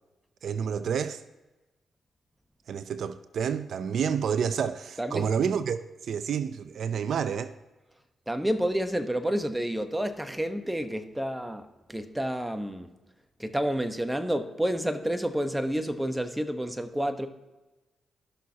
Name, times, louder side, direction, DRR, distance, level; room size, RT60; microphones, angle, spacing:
voice 1, 0.4-1.2 2.7-7.5, right 7 dB, 70° right, 0.5 m, -29 dB
voice 2, 5.0-5.3 8.3-12.9 13.4-17.3, equal, 10° right, 1.0 m, -29 dB
16.0 x 6.3 x 2.8 m
cardioid pair, 70°, 0 cm